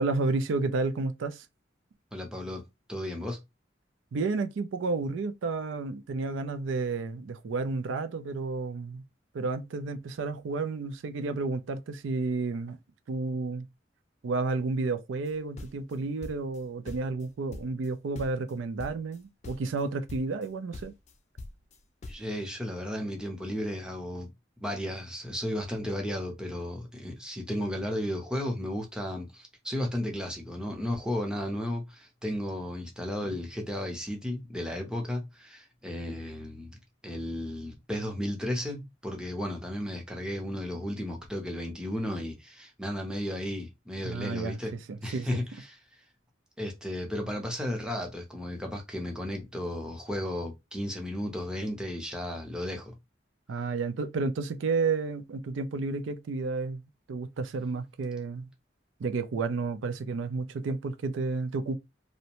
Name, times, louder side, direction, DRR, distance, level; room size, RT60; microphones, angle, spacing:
voice 1, 0.0-1.4 4.1-9.0 9.3-12.8 13.1-13.7 14.2-20.9 44.0-44.6 44.9-45.4 53.5-56.8 57.1-58.5 59.0-61.8, right 3 dB, 85° right, 0.4 m, -31 dB
voice 2, 2.1-2.6 2.9-3.4 22.1-24.3 24.6-36.8 37.0-44.7 45.0-45.8 46.6-52.9, left 1 dB, 5° right, 0.6 m, -34 dB
sound 1, 15.3-16.6 16.9-17.9 18.1-18.5 18.8-19.2 19.4-19.8 20.1-20.5 20.7-22.3, left 2 dB, 40° left, 0.4 m, -43 dB
2.6 x 2.1 x 2.9 m
head